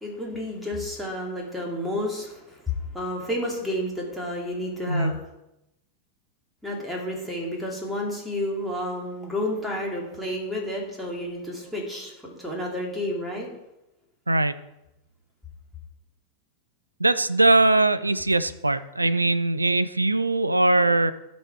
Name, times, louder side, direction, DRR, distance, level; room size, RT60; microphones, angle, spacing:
voice 1, 0.0-5.2 6.6-13.5, left 1 dB, ahead, -2 dB, 2.6 m, -31 dB
voice 2, 4.9-5.2 14.3-14.6 17.0-21.1, right 2 dB, 85° right, 15 dB, 0.3 m, -21 dB
13.0 x 5.3 x 4.7 m, 0.88 s
figure-of-eight pair, 90°, 0 cm